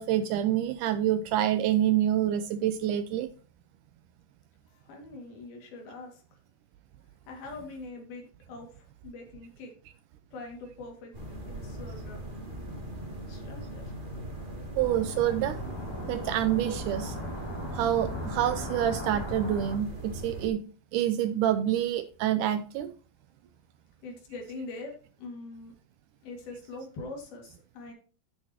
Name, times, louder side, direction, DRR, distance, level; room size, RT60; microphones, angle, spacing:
voice 1, 0.0-3.3 14.8-15.6 16.1-17.2 17.7-20.6 20.9-22.9, right 11 dB, 85° right, 10 dB, 1.8 m, -27 dB
voice 2, 4.7-6.2 7.3-9.7 10.3-11.1 11.5-12.3 13.3-13.9 24.0-25.7 26.2-27.9, left 3 dB, 75° left, 1 dB, 4.0 m, -43 dB
sound 1, 11.1-20.5, right 1 dB, 20° right, 1.7 m, -40 dB
wind synthetic good distant variable gusty, 14.8-19.8, left 1 dB, 10° left, 1.5 m, -39 dB
11.0 x 9.5 x 2.9 m, 0.38 s
omnidirectional pair, 4.4 m